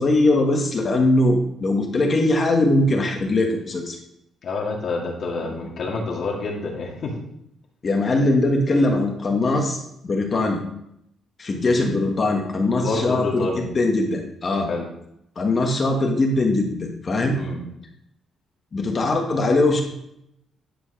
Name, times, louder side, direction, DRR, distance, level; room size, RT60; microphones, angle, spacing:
voice 1, 0.0-4.0 7.8-10.6 11.4-14.7 15.4-17.4 18.7-19.8, left 2 dB, 35° left, 2 dB, 1.4 m, -21 dB
voice 2, 4.4-7.1 12.8-13.6 14.7-14.8 17.3-17.6, left 3 dB, 55° left, -2 dB, 2.1 m, -27 dB
10.5 x 4.6 x 5.8 m, 0.77 s
cardioid pair, 125°, 0 cm